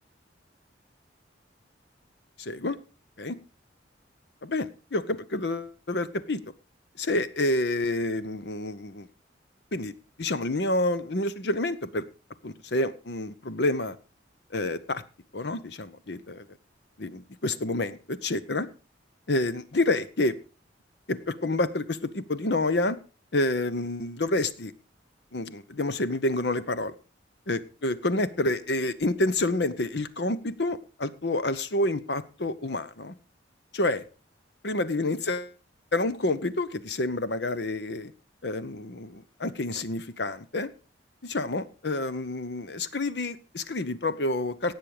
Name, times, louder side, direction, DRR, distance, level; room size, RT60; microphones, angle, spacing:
voice 1, 2.4-2.8 3.2-3.3 4.4-6.4 7.0-9.1 9.7-9.9 10.2-12.0 12.4-14.0 14.5-15.0 15.3-16.5 17.0-18.7 19.3-20.4 21.1-23.0 23.3-24.7 25.3-26.9 27.5-33.1 33.7-34.0 34.6-35.5 35.9-38.1 38.4-40.7 41.2-44.8, left 2 dB, 60° left, 14 dB, 0.9 m, -28 dB
17.5 x 7.5 x 4.9 m, 0.35 s
head